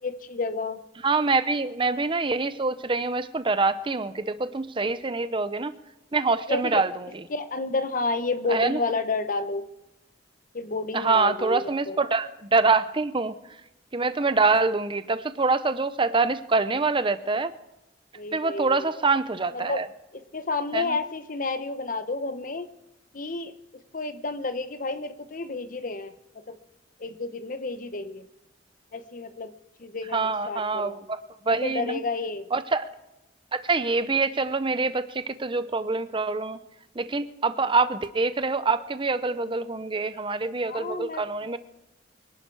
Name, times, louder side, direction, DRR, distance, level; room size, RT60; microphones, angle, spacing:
voice 1, 0.0-0.8 6.5-6.8 7.3-9.6 10.5-11.6 11.9-12.0 18.1-18.9 19.5-19.8 20.1-22.7 23.1-23.5 23.9-26.6 27.0-28.2 28.9-29.5 29.8-31.0 31.5-32.5 40.7-41.2, left 3 dB, 50° left, 10 dB, 1.0 m, -30 dB
voice 2, 1.0-5.7 6.1-7.1 8.5-8.8 10.9-13.4 13.9-17.5 18.3-19.9 20.7-21.0 30.1-31.2 31.5-32.0 32.5-32.9 33.5-36.6 37.0-41.6, right 3 dB, 30° right, 12 dB, 0.7 m, -25 dB
24.0 x 11.0 x 4.8 m, 0.95 s
head